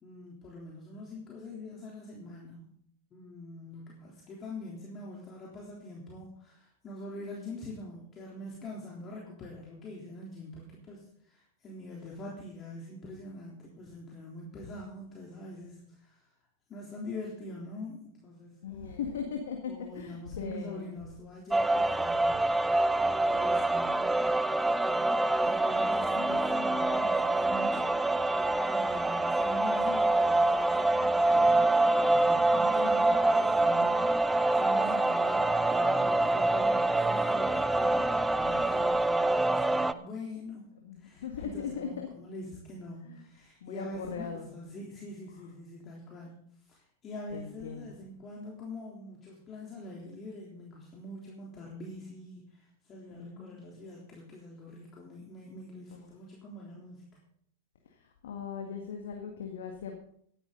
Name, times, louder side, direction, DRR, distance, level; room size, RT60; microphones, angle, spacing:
voice 1, 0.0-2.7 3.1-16.2 16.7-19.4 19.6-22.5 23.2-24.4 24.8-27.8 28.7-40.7 41.0-46.4 46.7-57.2, left 1 dB, 30° left, -3 dB, 3.5 m, -44 dB
voice 2, 18.6-20.9 40.9-42.1 43.1-43.2 43.6-44.5 45.4-45.5 47.3-47.9 53.1-53.6 58.2-60.0, left 6 dB, 70° left, 2 dB, 1.9 m, -39 dB
sound 1, 21.5-39.9, right 2 dB, 10° right, 0.6 m, -26 dB
16.5 x 11.0 x 4.0 m, 0.66 s
hypercardioid pair, 100°, 0 cm